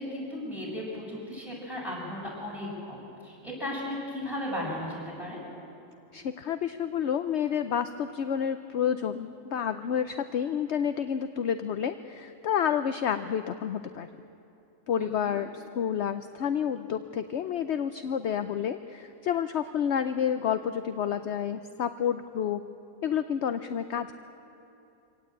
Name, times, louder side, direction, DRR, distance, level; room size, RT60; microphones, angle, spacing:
voice 1, 0.0-3.0 3.2-5.4 15.0-15.4, left 1 dB, ahead, -5 dB, 7.2 m, -36 dB
voice 2, 6.1-14.2 14.9-22.6 23.0-24.1, left 8 dB, 60° left, 10 dB, 0.9 m, -29 dB
25.0 x 17.5 x 8.7 m, 2.9 s
omnidirectional pair, 1.4 m